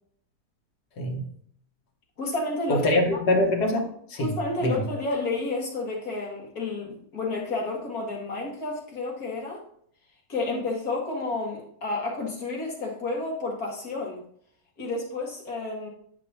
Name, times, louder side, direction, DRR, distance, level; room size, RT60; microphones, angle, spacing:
voice 1, 2.2-2.9 4.2-9.6 10.3-14.2 14.8-15.9, left 2 dB, 65° left, -2 dB, 2.3 m, -30 dB
voice 2, 2.7-4.3 4.6-4.8, left 1 dB, 90° left, 0 dB, 2.0 m, -24 dB
9.8 x 5.3 x 2.9 m, 0.63 s
omnidirectional pair, 1.7 m